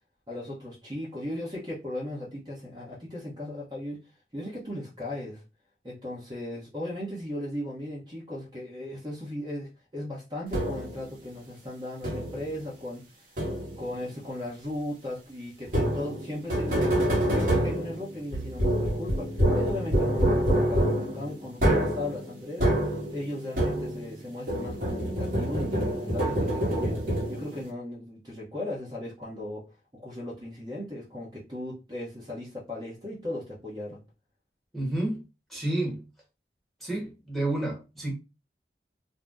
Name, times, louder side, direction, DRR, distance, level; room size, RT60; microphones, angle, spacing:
voice 1, 0.3-4.0 4.3-5.4 5.8-13.3 13.8-22.7 23.1-27.0 27.3-29.6 29.9-34.0, left 1 dB, 25° right, -5 dB, 0.8 m, -37 dB
sound 1, 10.5-11.0 12.0-12.5 13.4-13.9 15.7-24.2 24.5-27.6, right 1 dB, 50° right, 1.1 m, -26 dB
voice 2, 34.7-35.2 35.5-36.0 36.8-38.1, right 1 dB, ahead, -4 dB, 1.1 m, -30 dB
2.6 x 2.1 x 3.4 m, 0.28 s
head